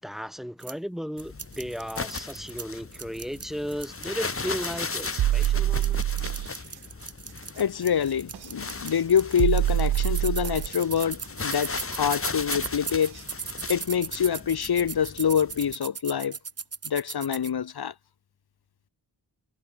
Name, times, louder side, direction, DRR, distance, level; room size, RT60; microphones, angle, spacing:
voice 1, 0.0-6.1, equal, ahead, 4.1 m, -35 dB
sound 1, 0.6-0.7 1.2-2.7 2.9-5.5 5.7-17.5, right 5 dB, 35° right, 1.5 m, -37 dB
sound 2, 1.2-15.7, left 4 dB, 30° left, 4.2 m, -37 dB
sound 3, 5.2-6.5 8.3-8.5 9.4-10.7 12.5-12.7 13.2-13.3, right 13 dB, 65° right, 0.5 m, -24 dB
voice 2, 7.6-13.2 13.7-16.4 16.8-17.9, left 8 dB, 65° left, 1.9 m, -26 dB
wide cardioid pair, 165°, 41 cm